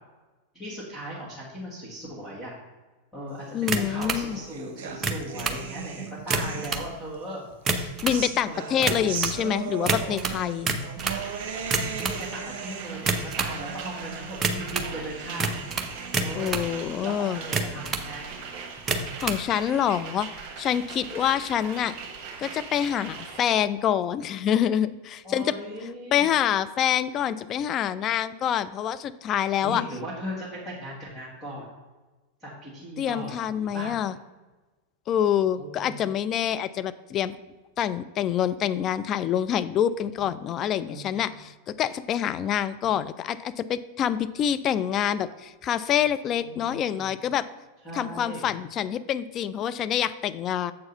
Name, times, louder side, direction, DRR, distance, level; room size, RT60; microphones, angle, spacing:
voice 1, 0.5-2.5 3.1-7.4 8.4-8.9 12.0-15.5 16.2-16.6 17.0-18.4 25.2-26.3 29.6-31.7 32.4-33.9 35.6-36.0 40.8-41.2 46.4-47.1 47.8-48.5, equal, ahead, -9 dB, 2.1 m, -38 dB
voice 2, 3.5-4.4 8.0-10.7 16.4-17.4 18.9-20.3 20.6-21.9 22.4-25.5 26.1-29.8 33.0-34.1 35.1-37.4 37.8-47.4 47.9-50.7, left 9 dB, 30° left, 13 dB, 0.3 m, -26 dB
sound 1, 3.7-4.2 4.9-5.6 6.2-6.9 7.5-8.2 8.8-9.4 9.9-11.2 11.6-12.2 13.0-13.6 14.4-14.9 15.4-16.7 17.4-18.1 18.8-19.4, right 3 dB, 20° right, 0.8 m, -28 dB
sound 2, 3.8-7.2 7.6-19.1, right 7 dB, 50° right, 0.9 m, -39 dB
sound 3, 11.0-23.5, right 5 dB, 35° right, 1.6 m, -40 dB
7.4 x 4.7 x 5.5 m, 1.2 s
figure-of-eight pair, 90°, 0 cm